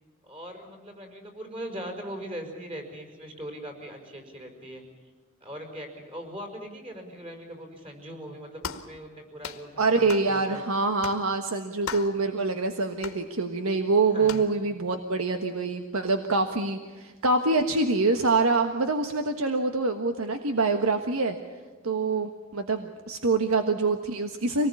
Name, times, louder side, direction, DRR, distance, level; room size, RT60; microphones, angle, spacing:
voice 1, 0.2-4.8 5.4-10.4 14.1-14.4, equal, 25° right, 3 dB, 5.4 m, -40 dB
sound 1, 8.6-8.9 9.4-9.7 10.1-10.3 11.0-11.2 11.9-12.2 13.0-13.2 14.3-14.5, left 5 dB, 80° left, 1.8 m, -37 dB
voice 2, 9.8-21.4 21.8-24.7, right 3 dB, 90° right, 6 dB, 1.5 m, -25 dB
26.0 x 19.0 x 8.5 m, 1.4 s
head